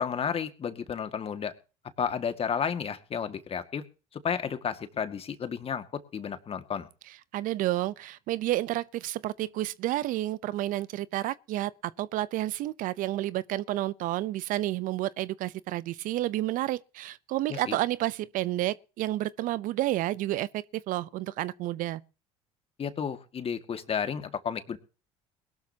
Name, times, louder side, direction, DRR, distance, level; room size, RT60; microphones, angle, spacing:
voice 1, 0.0-1.5 2.0-3.8 4.2-5.8 6.1-6.9 17.5-17.8 22.8-24.8, left 7 dB, 40° left, 2.0 m, -32 dB
voice 2, 7.3-22.0, right 15 dB, 60° right, 0.7 m, -30 dB
21.5 x 12.5 x 2.9 m
hypercardioid pair, 70°, 16 cm